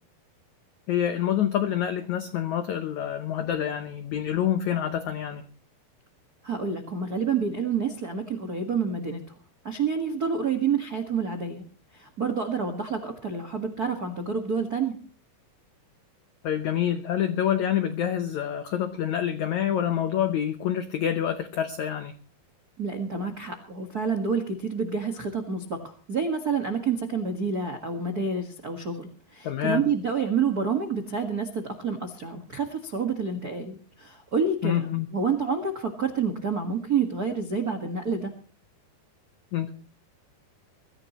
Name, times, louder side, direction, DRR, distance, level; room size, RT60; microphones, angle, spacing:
voice 1, 0.9-5.4 16.4-22.1 29.4-29.8 34.6-35.1 39.5-39.7, left 10 dB, 80° left, 9 dB, 1.6 m, -27 dB
voice 2, 6.4-9.2 9.6-11.6 11.9-15.0 22.8-38.3, right 5 dB, 75° right, 7 dB, 0.8 m, -28 dB
23.0 x 14.5 x 3.0 m, 0.39 s
omnidirectional pair, 4.7 m